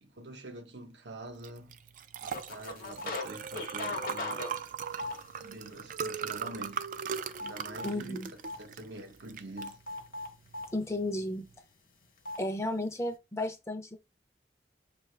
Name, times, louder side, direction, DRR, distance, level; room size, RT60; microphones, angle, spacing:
voice 1, 0.0-1.8 2.2-4.5 5.4-6.8 7.4-8.2 8.6-9.8, right 1 dB, 85° right, 0.8 m, -45 dB
Liquid, 1.4-11.5, right 7 dB, 50° right, 0.3 m, -40 dB
sound 1, 2.3-3.3 3.5-5.6 6.1-6.3 6.6-8.0 8.4-8.6 9.6-10.7 12.3-12.4, left 2 dB, 55° left, 0.9 m, -38 dB
voice 2, 7.8-8.3 10.7-11.5 12.4-14.0, left 1 dB, 15° left, 0.5 m, -33 dB
5.7 x 2.4 x 3.2 m
head